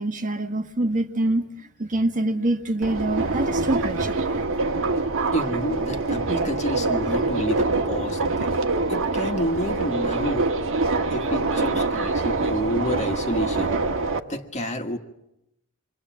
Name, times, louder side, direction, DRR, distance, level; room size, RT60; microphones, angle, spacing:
voice 1, 0.0-4.4, right 1 dB, 35° right, 1.3 m, -25 dB
Subway metro underground, 2.8-14.2, right 3 dB, 65° right, 1.5 m, -25 dB
voice 2, 5.3-8.6 8.9-10.5 11.1-13.8 14.3-15.0, equal, 35° left, 1.7 m, -29 dB
27.0 x 24.0 x 7.5 m
head